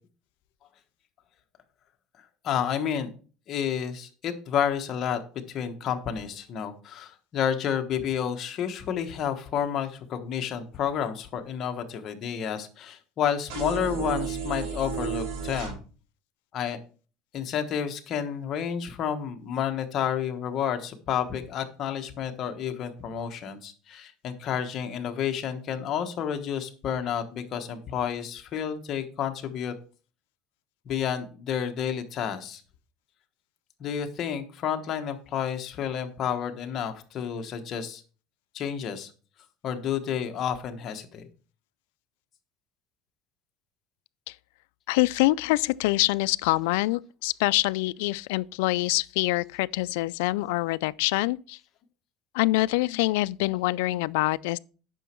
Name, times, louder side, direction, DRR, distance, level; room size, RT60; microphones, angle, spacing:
voice 1, 2.4-3.1 3.5-5.2 5.5-15.8 16.5-16.8 17.3-29.7 30.8-32.6 33.8-38.0 38.5-39.1 39.6-41.3, left 8 dB, 40° left, 1.2 m, -30 dB
sound 1, 13.5-15.7, right 6 dB, 80° right, 4.7 m, -32 dB
voice 2, 44.9-51.6 52.3-54.6, left 20 dB, 85° left, 0.3 m, -25 dB
9.2 x 6.1 x 4.4 m
cardioid pair, 145°, 0 cm